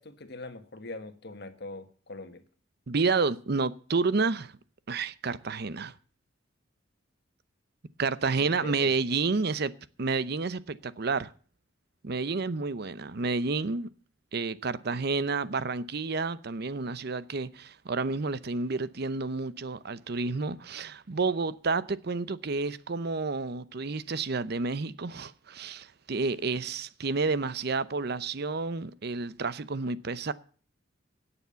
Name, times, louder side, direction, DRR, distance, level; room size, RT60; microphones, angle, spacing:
voice 1, 0.0-2.4 8.6-8.9, left 2 dB, 60° left, 1.5 m, -42 dB
voice 2, 2.9-4.5 4.9-5.9 8.0-9.7 10.0-11.3 12.0-13.9 14.3-30.3, right 4 dB, 55° right, 0.7 m, -30 dB
17.5 x 7.1 x 6.9 m
head